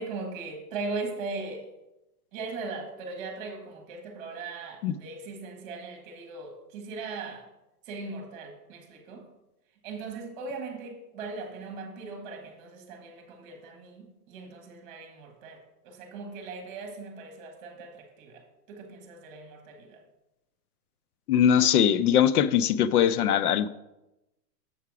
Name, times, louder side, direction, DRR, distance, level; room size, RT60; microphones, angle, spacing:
voice 1, 0.0-1.7 2.3-7.4 7.9-9.2 9.8-15.6 15.8-18.4 18.7-20.0, right 3 dB, 30° right, 3 dB, 1.5 m, -39 dB
voice 2, 21.3-23.7, left 9 dB, 65° left, 14 dB, 0.6 m, -21 dB
7.2 x 5.7 x 4.8 m, 0.95 s
supercardioid pair, 170°, 49 cm